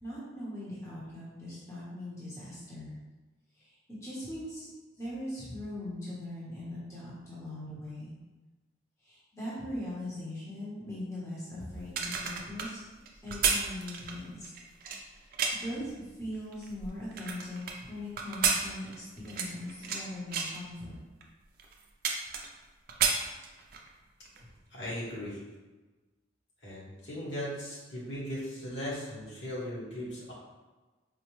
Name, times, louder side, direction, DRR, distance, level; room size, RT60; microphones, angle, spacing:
voice 1, 0.0-3.0 3.5-4.7 5.0-8.1 9.0-12.8 13.2-14.5 15.1-21.0, left 1 dB, 15° left, -9 dB, 0.8 m, -40 dB
sound 1, 11.8-15.8 16.3-17.8 18.2-20.0 20.3-20.6 21.2-21.3 21.6-22.6 22.9-23.9 24.3-24.4, right 5 dB, 50° right, 0.4 m, -31 dB
voice 2, 24.7-25.4 26.6-30.3, equal, 60° left, -7 dB, 1.2 m, -38 dB
4.3 x 2.1 x 3.0 m, 1.2 s
head